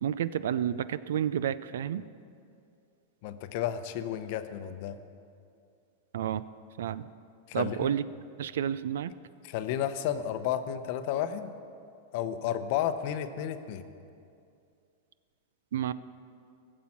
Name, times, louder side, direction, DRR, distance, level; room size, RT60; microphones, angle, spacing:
voice 1, 0.0-2.0 6.1-6.4 6.8-7.0 7.5-8.1 8.4-9.1 15.7-15.9, right 9 dB, 80° right, 16 dB, 0.4 m, -30 dB
voice 2, 3.2-5.0 7.5-7.9 9.4-11.5 12.1-13.9, left 10 dB, 45° left, 10 dB, 0.7 m, -32 dB
16.5 x 7.5 x 7.2 m, 2.4 s
supercardioid pair, 165°, 0 cm